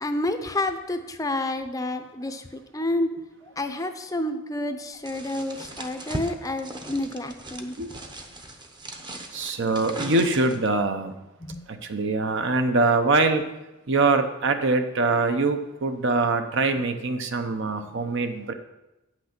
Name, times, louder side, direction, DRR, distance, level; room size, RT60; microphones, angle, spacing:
voice 1, 0.0-3.1 3.6-7.8 11.4-11.6, left 1 dB, 15° left, 7 dB, 0.5 m, -29 dB
sound 1, 5.1-10.8, right 1 dB, 20° right, 0.8 m, -38 dB
voice 2, 9.3-11.1 11.7-13.4 13.9-18.5, right 3 dB, 60° right, 7 dB, 0.8 m, -23 dB
8.9 x 6.1 x 5.9 m, 0.97 s
head